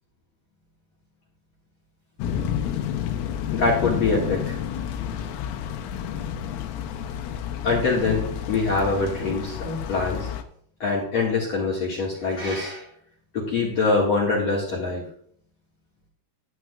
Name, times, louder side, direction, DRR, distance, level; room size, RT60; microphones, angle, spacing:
sound 1, 2.2-10.4, left 9 dB, 85° left, 3.5 m, -30 dB
voice 1, 3.5-4.6 7.6-10.3 10.8-12.8 13.3-15.0, left 3 dB, 55° left, -3 dB, 1.9 m, -24 dB
13.0 x 9.2 x 2.4 m, 0.64 s
omnidirectional pair, 5.9 m